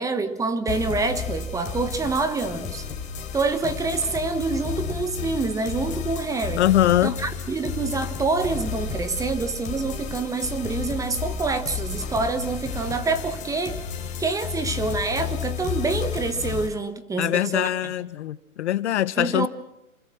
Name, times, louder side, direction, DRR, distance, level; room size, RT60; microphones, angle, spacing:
voice 1, 0.0-2.9 3.3-6.6 7.0-13.8 14.2-17.7 19.2-19.5, right 3 dB, 5° right, 11 dB, 1.3 m, -26 dB
sound 1, 0.7-16.7, left 6 dB, 15° left, 3.6 m, -32 dB
voice 2, 6.6-7.2 17.2-19.5, left 12 dB, 50° left, 17 dB, 1.0 m, -22 dB
28.0 x 21.0 x 6.0 m, 0.87 s
hypercardioid pair, 140°, 44 cm